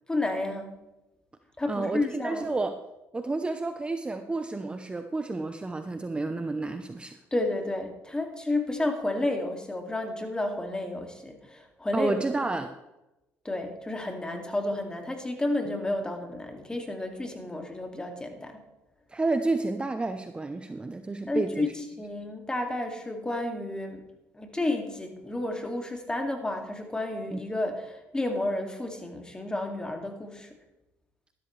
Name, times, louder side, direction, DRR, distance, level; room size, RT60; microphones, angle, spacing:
voice 1, 0.1-0.8 1.6-2.5 7.3-12.2 13.4-18.6 21.3-24.0 24.3-30.6, left 2 dB, 15° left, 4 dB, 2.4 m, -31 dB
voice 2, 1.7-2.8 3.1-7.2 11.9-12.7 19.1-21.7 27.3-27.4, right 3 dB, 20° right, 8 dB, 0.8 m, -30 dB
13.0 x 12.5 x 3.3 m, 0.96 s
supercardioid pair, 80°, 6 cm